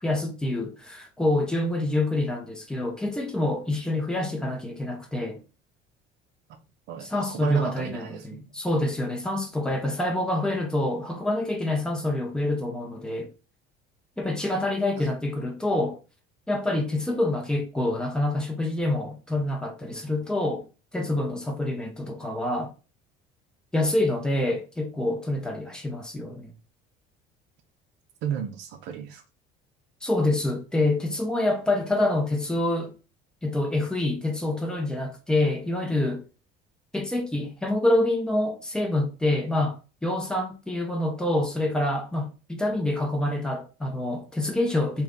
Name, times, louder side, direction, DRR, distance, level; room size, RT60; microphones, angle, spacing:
voice 1, 0.0-5.4 7.1-13.3 14.2-16.0 16.5-20.7 20.9-22.7 23.7-26.5 30.0-32.9 33.4-36.2 36.9-45.0, left 1 dB, 5° left, 0.7 m, -26 dB
voice 2, 6.9-8.5 15.0-15.1 28.2-29.2, right 9 dB, 70° right, 0.6 m, -32 dB
3.2 x 2.6 x 3.6 m
cardioid pair, 150°, 19 cm